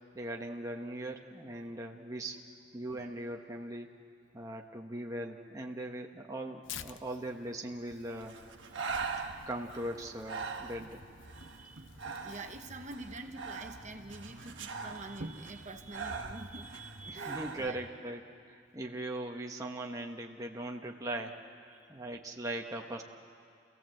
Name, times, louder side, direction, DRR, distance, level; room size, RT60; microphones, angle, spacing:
voice 1, 0.1-2.4 2.7-4.0 4.3-8.4 9.5-11.0 17.1-23.1, right 1 dB, 15° right, 1 dB, 1.1 m, -40 dB
Tearing, 6.6-13.1, left 9 dB, 80° left, 0.7 m, -52 dB
Breathing, 8.2-17.7, right 4 dB, 70° right, 1.4 m, -42 dB
voice 2, 8.9-9.2 11.3-11.9 12.2-17.8 21.7-21.8, right 2 dB, 40° right, 5 dB, 1.1 m, -46 dB
sound 1, 11.0-17.9, equal, 55° right, 1.9 m, -55 dB
29.0 x 16.5 x 7.8 m, 2.3 s
head